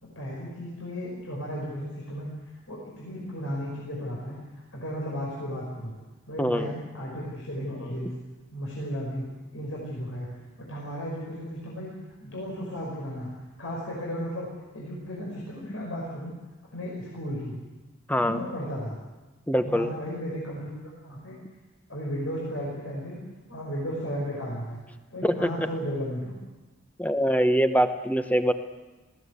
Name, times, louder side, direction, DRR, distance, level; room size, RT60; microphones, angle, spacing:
voice 1, 0.0-2.3 2.7-4.4 4.7-5.9 6.3-8.1 8.5-9.3 9.5-10.3 10.6-11.9 12.2-13.3 13.6-16.3 16.6-17.6 18.2-19.0 19.5-21.4 21.9-23.2 23.5-24.8 25.1-26.4, equal, 80° left, -4 dB, 5.6 m, -34 dB
voice 2, 6.4-6.7 18.1-18.4 19.5-19.9 25.2-25.7 27.0-28.5, equal, 5° left, 8 dB, 0.9 m, -23 dB
20.5 x 16.5 x 8.3 m, 1.2 s
head